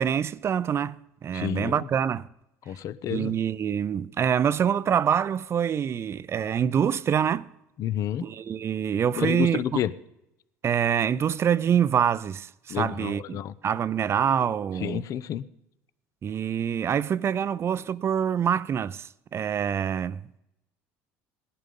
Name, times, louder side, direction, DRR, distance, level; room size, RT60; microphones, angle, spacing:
voice 1, 0.0-2.3 3.1-7.5 8.2-9.8 10.6-13.4 13.6-15.0 16.2-20.4, right 8 dB, 40° right, 0.5 m, -26 dB
voice 2, 1.3-1.9 2.7-3.3 7.8-8.3 9.1-9.9 12.7-13.5 14.8-15.4, left 10 dB, 55° left, 0.7 m, -30 dB
18.0 x 11.0 x 5.4 m
supercardioid pair, 85°, 7 cm